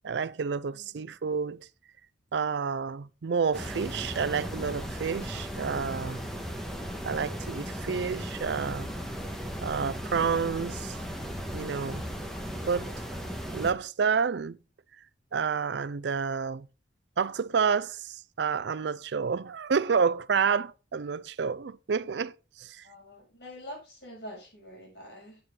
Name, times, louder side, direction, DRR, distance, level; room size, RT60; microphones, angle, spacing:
voice 1, 0.0-1.7 2.3-6.2 7.0-8.9 9.6-11.0 11.5-12.0 12.7-12.9 13.5-14.6 15.3-16.7 17.2-22.8, right 6 dB, 65° right, 0.4 m, -29 dB
voice 2, 0.7-1.0 22.8-25.4, equal, 60° left, 6.8 m, -45 dB
sound 1, 3.5-13.7, equal, ahead, 1.4 m, -36 dB
9.6 x 9.0 x 3.8 m
head